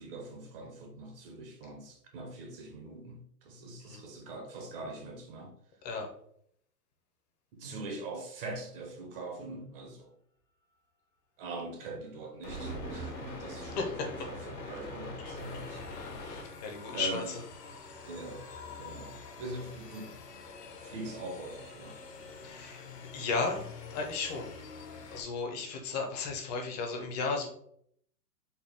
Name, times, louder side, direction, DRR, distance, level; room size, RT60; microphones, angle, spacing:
voice 1, 0.0-5.6 7.5-10.1 11.4-15.8 16.9-17.3 18.0-18.4 18.8-20.1 20.8-22.0, right 2 dB, 35° right, 0.8 m, -42 dB
sound 1, 12.4-16.4 16.7-16.8 18.1-18.2 18.6-18.7 19.2-19.3, left 3 dB, 90° left, 1.3 m, -43 dB
sound 2, 12.5-15.9 16.2-16.3, right 4 dB, 80° right, 0.8 m, -46 dB
voice 2, 13.6-14.1 15.2-15.3 15.9-17.4 22.4-22.9 23.1-23.6 23.9-24.6 25.1-27.5, left 4 dB, 25° left, 0.6 m, -35 dB
sound 3, 15.3-25.2, left 5 dB, 75° left, 0.9 m, -47 dB
4.2 x 2.1 x 3.4 m
hypercardioid pair, 125°, 48 cm